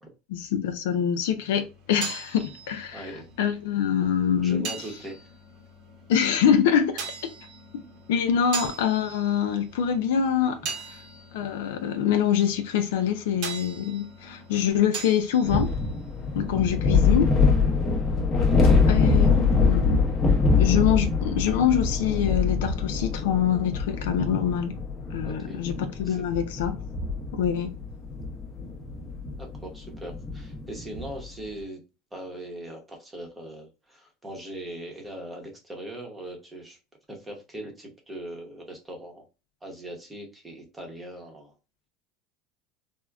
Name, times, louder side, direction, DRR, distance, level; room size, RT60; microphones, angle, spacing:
voice 1, 0.3-4.7 6.1-7.0 8.1-10.6 10.9-11.0 11.3-15.7 16.3-17.3 18.9-20.0 20.5-24.8 25.1-26.8 27.3-27.7, left 8 dB, 90° left, 0.4 m, -25 dB
sound 1, 1.6-17.1, right 5 dB, 55° right, 0.8 m, -41 dB
voice 2, 2.9-3.3 4.4-5.2 18.5-18.9 25.2-25.6 26.1-26.2 29.4-31.8 32.1-36.8 37.1-39.2 39.6-41.5, right 1 dB, 10° right, 0.8 m, -40 dB
sound 2, 15.4-31.3, left 4 dB, 25° left, 0.7 m, -24 dB
3.5 x 2.1 x 2.3 m
supercardioid pair, 140°, 0 cm